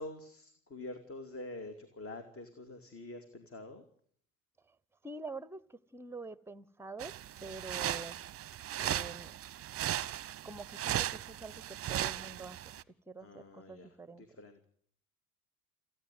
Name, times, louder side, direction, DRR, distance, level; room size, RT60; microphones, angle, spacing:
voice 1, 0.0-3.8 13.2-13.9 14.2-14.6, left 2 dB, 35° left, 2.7 m, -46 dB
voice 2, 5.0-8.2 8.8-9.3 10.4-12.8 13.1-14.2, right 3 dB, 5° right, 1.0 m, -46 dB
sound 1, 7.0-12.8, right 12 dB, 35° right, 0.8 m, -37 dB
29.0 x 10.0 x 9.5 m
hypercardioid pair, 65°, 41 cm